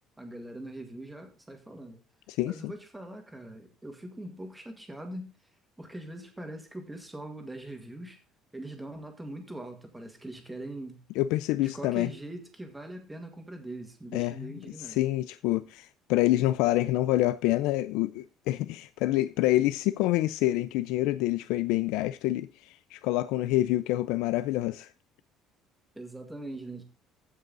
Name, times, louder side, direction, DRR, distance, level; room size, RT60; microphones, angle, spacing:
voice 1, 0.2-2.0 2.4-5.3 5.8-8.2 8.5-11.0 11.6-15.0 25.9-26.8, right 1 dB, 5° right, 1.8 m, -42 dB
voice 2, 2.3-2.7 11.2-12.1 14.1-14.5 14.8-24.9, left 16 dB, 80° left, 0.4 m, -27 dB
15.0 x 5.5 x 3.9 m
cardioid pair, 175°, 0 cm